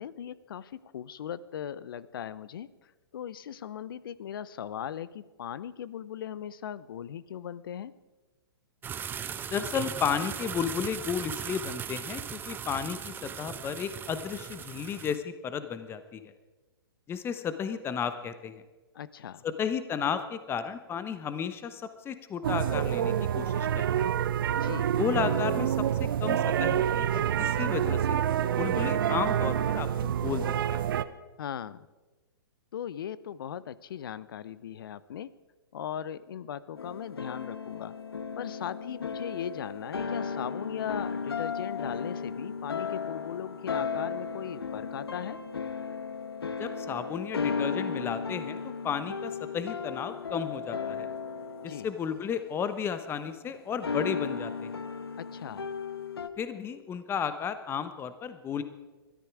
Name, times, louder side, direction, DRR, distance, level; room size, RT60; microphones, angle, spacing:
voice 1, 0.0-2.7 3.1-7.9 18.9-19.4 24.5-24.9 31.4-31.9 32.7-35.3 35.7-37.9 38.4-45.4 51.6-51.9 55.2-55.6, left 9 dB, 65° left, 18 dB, 0.8 m, -38 dB
sound 1, 8.8-15.2, right 8 dB, 15° right, 0.7 m, -38 dB
voice 2, 9.5-16.3 17.1-18.6 19.4-24.0 25.0-28.2 28.6-30.4 30.7-30.8 46.6-51.1 51.6-54.7 56.4-58.6, left 7 dB, 20° left, 11 dB, 1.0 m, -33 dB
Ben Shewmaker - Foster Practice Rooms, 22.4-31.0, right 9 dB, 60° right, 0.8 m, -27 dB
sound 2, 36.8-53.2 53.8-56.3, left 5 dB, 80° left, 1.3 m, -35 dB
21.0 x 13.0 x 4.8 m, 1.2 s
hypercardioid pair, 120°, 13 cm